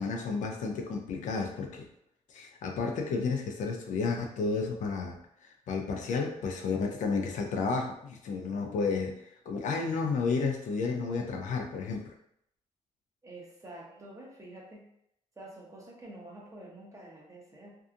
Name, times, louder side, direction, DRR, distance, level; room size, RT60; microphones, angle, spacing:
voice 1, 0.0-1.9 2.3-12.1, left 4 dB, 75° left, 3 dB, 0.5 m, -32 dB
voice 2, 13.2-14.9 15.4-17.8, right 1 dB, 25° right, -2 dB, 0.9 m, -48 dB
2.7 x 2.3 x 2.5 m, 0.73 s
cardioid pair, 80°, 13 cm